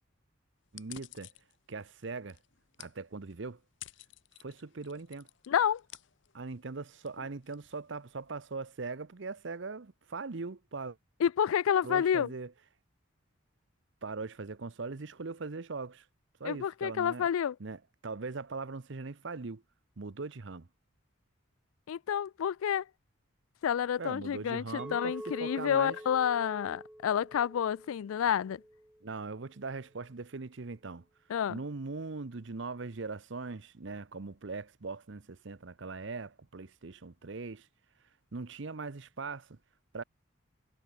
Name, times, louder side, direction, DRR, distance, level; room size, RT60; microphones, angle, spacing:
sound 1, 0.6-8.4, left 14 dB, 60° left, 0.7 m, -54 dB
voice 1, 0.7-1.3 1.7-2.4 2.8-3.6 4.4-5.3 6.3-11.0 11.8-12.5 14.0-16.1 16.4-17.3 17.6-19.6 20.0-20.7 24.0-26.0 29.0-31.0 31.5-37.7 38.3-39.6 39.9-40.0, right 4 dB, 60° right, 0.8 m, -40 dB
voice 2, 5.5-5.8 11.2-12.3 16.4-17.6 21.9-22.9 23.6-28.6 31.3-31.6, left 8 dB, 85° left, 0.3 m, -29 dB
Chink clink, 24.8-29.0, right 1 dB, 5° right, 0.4 m, -46 dB
head